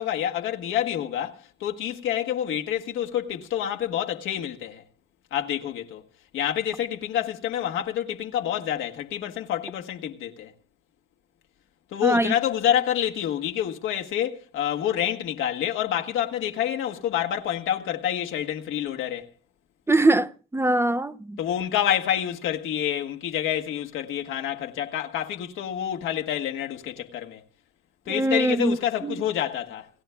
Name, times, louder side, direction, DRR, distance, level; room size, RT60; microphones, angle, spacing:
voice 1, 0.0-4.8 5.3-6.0 6.3-10.5 11.9-19.3 21.4-27.4 28.1-29.9, left 10 dB, 85° left, 1.5 m, -28 dB
voice 2, 12.0-12.3 19.9-21.4 28.1-28.8 29.0-29.2, right 2 dB, 10° right, 0.6 m, -22 dB
29.0 x 18.0 x 2.3 m
cardioid pair, 90°, 20 cm